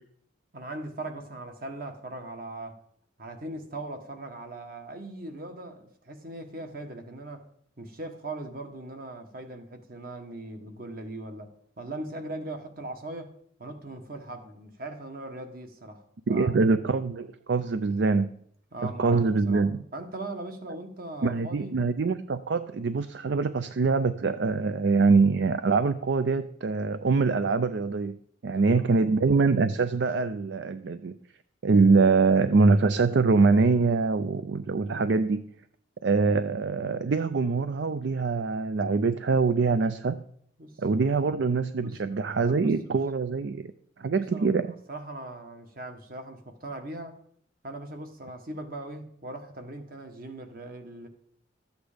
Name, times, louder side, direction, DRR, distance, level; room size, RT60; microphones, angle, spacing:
voice 1, 0.5-2.8 3.2-7.4 7.8-13.3 13.6-16.0 16.3-16.5 18.7-21.8 28.7-28.9 40.6-40.7 41.8-42.0 42.4-43.0 44.1-44.5 44.9-47.2 47.6-51.1, right 2 dB, 50° right, 6 dB, 1.5 m, -39 dB
voice 2, 16.3-18.3 18.8-19.8 21.2-31.1 31.6-35.4 36.0-40.2 40.8-43.7 44.0-44.7, right 4 dB, 65° right, 12 dB, 0.5 m, -24 dB
13.5 x 8.2 x 5.1 m, 0.66 s
head